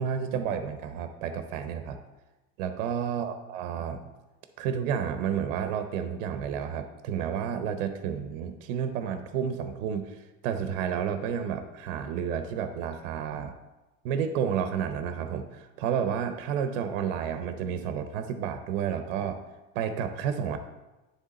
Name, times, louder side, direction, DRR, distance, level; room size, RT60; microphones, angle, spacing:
voice 1, 0.0-2.0 2.6-4.0 4.6-10.1 10.4-13.5 14.0-19.4 19.7-20.6, right 8 dB, 80° right, 8 dB, 0.8 m, -31 dB
9.8 x 3.5 x 4.1 m, 1.1 s
supercardioid pair, 135°, 37 cm